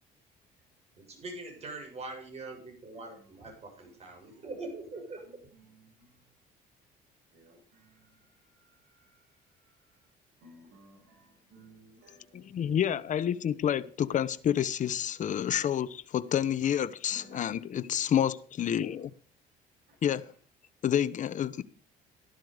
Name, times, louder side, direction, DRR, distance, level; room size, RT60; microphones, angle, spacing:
voice 1, 1.0-5.5, right 2 dB, 40° right, 7.6 m, -43 dB
voice 2, 2.9-3.3 3.8-4.5 5.2-6.2 7.3-10.0 10.4-12.8 14.1-14.3 15.2-15.4 15.8-16.0 17.1-17.5 17.7-18.0 18.7-19.0 19.9-20.2, right 1 dB, 65° right, 6.7 m, -59 dB
voice 3, 12.3-19.1 20.0-20.3 20.8-21.6, left 9 dB, 50° left, 1.0 m, -29 dB
14.0 x 12.0 x 5.1 m
cardioid pair, 110°, 17 cm